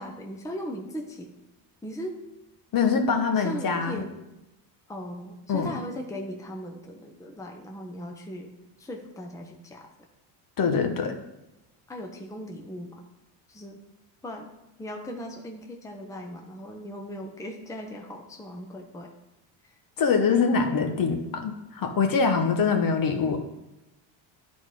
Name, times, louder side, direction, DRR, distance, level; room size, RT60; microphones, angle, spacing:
voice 1, 0.0-1.3 1.8-2.2 3.4-4.1 4.9-8.5 8.8-9.9 11.9-13.0 13.5-13.8 14.2-14.5 14.8-19.1 19.7-19.8, equal, 5° left, 2 dB, 0.9 m, -38 dB
voice 2, 2.7-4.0 5.5-5.7 10.6-11.2 20.0-23.4, left 5 dB, 45° left, 5 dB, 1.2 m, -24 dB
10.5 x 4.2 x 5.0 m, 0.95 s
cardioid pair, 115°, 48 cm